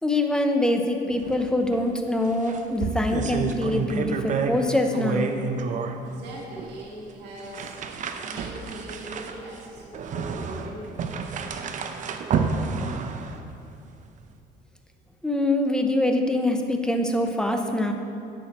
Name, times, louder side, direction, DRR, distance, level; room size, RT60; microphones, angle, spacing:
voice 1, 0.0-5.3 15.2-17.9, left 1 dB, 5° left, 4 dB, 0.7 m, -24 dB
sound 1, 1.2-1.4 1.7-1.8 2.2-4.7 4.9-6.0 6.6-6.7 7.4-13.5, right 5 dB, 50° right, 0.6 m, -29 dB
voice 2, 6.0-7.8 8.2-11.0, right 1 dB, 80° right, -4 dB, 1.8 m, -40 dB
10.0 x 6.2 x 4.2 m, 2.6 s
cardioid pair, 110°, 17 cm